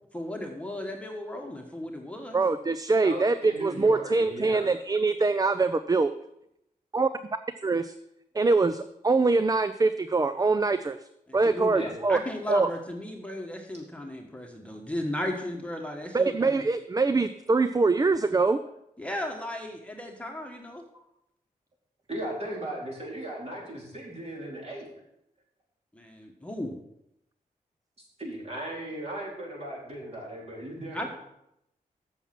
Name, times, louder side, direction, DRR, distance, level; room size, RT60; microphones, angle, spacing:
voice 1, 0.1-2.4 11.3-16.7 19.0-20.8 25.9-26.7 30.9-31.1, left 1 dB, 10° left, 1 dB, 1.4 m, -35 dB
voice 2, 2.3-6.1 6.9-7.1 7.6-7.9 8.3-11.0 11.3-12.2 12.5-12.7 16.1-18.6, right 3 dB, 25° right, 11 dB, 0.4 m, -24 dB
voice 3, 3.0-4.7 11.7-11.9 22.1-24.9 28.2-31.1, right 1 dB, 45° right, -3 dB, 3.9 m, -37 dB
7.3 x 7.0 x 5.8 m, 0.80 s
cardioid pair, 60°, 15 cm